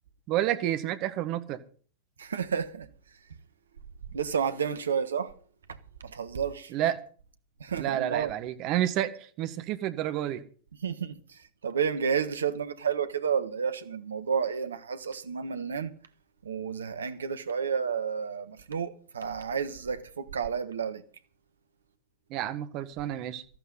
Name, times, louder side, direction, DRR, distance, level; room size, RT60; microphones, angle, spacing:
voice 1, 0.3-1.6 6.7-7.0 7.8-10.4 22.3-23.4, right 12 dB, 40° right, 1.5 m, -30 dB
voice 2, 2.2-2.9 4.1-5.3 5.7-5.8 6.0-6.7 7.6-8.3 10.8-15.9 16.4-21.0, right 7 dB, 70° right, 1.2 m, -31 dB
18.5 x 14.0 x 4.0 m
figure-of-eight pair, 90°, 0 cm